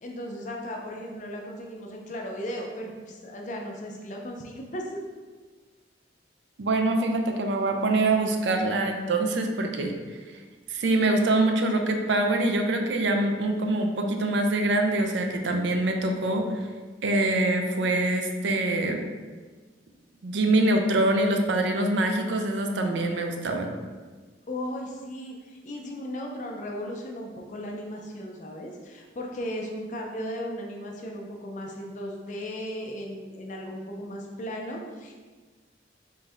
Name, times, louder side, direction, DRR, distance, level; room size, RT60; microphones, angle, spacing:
voice 1, 0.0-5.0 24.5-35.1, equal, 40° left, 0 dB, 0.5 m, -36 dB
voice 2, 6.6-9.9 10.7-16.6 17.0-19.1 20.2-23.7, right 2 dB, 75° right, 4 dB, 0.5 m, -24 dB
3.8 x 2.6 x 3.4 m, 1.4 s
head